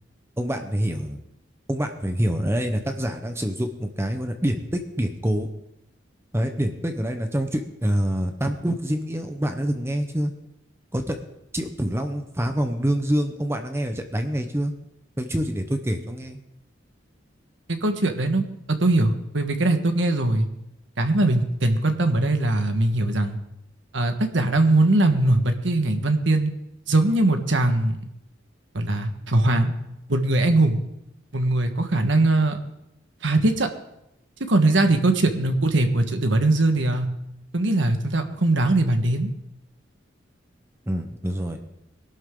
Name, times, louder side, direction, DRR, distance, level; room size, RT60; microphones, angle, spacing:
voice 1, 0.4-1.2 1.7-5.5 6.3-10.3 10.9-11.2 11.5-14.7 15.2-16.4 40.9-41.6, equal, 15° right, 6 dB, 0.9 m, -26 dB
voice 2, 17.7-20.5 21.0-23.4 23.9-26.5 26.9-28.0 28.7-29.7 30.1-30.8 31.3-32.6 33.2-33.7 34.4-37.1 37.5-39.3, right 2 dB, 70° right, 6 dB, 1.5 m, -21 dB
21.5 x 12.0 x 3.8 m, 0.85 s
head